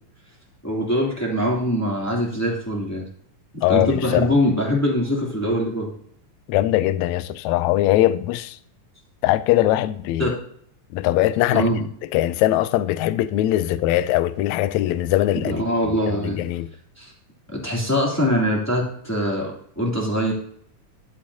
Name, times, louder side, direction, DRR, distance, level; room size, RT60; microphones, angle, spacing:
voice 1, 0.6-3.0 3.5-5.9 10.2-10.4 11.5-11.9 15.3-16.4 17.0-17.1 17.5-20.3, equal, 5° left, 2.6 m, -23 dB
voice 2, 3.6-4.3 6.5-8.6 9.2-10.3 10.9-11.7 12.1-15.6 16.2-16.7, left 14 dB, 85° left, 1.7 m, -21 dB
12.0 x 9.5 x 2.9 m
omnidirectional pair, 3.8 m